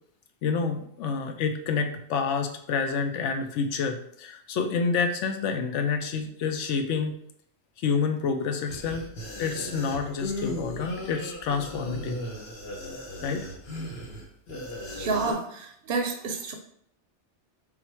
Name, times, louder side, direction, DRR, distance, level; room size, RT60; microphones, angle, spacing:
voice 1, 0.4-7.1 7.8-9.1 9.4-12.2 13.2-13.5, left 5 dB, 85° left, 5 dB, 0.9 m, -28 dB
sound 1, 8.7-15.3, left 1 dB, 60° left, 1.1 m, -37 dB
voice 2, 14.9-16.5, right 4 dB, 60° right, 3 dB, 0.6 m, -29 dB
3.5 x 2.4 x 4.3 m, 0.68 s
omnidirectional pair, 1.2 m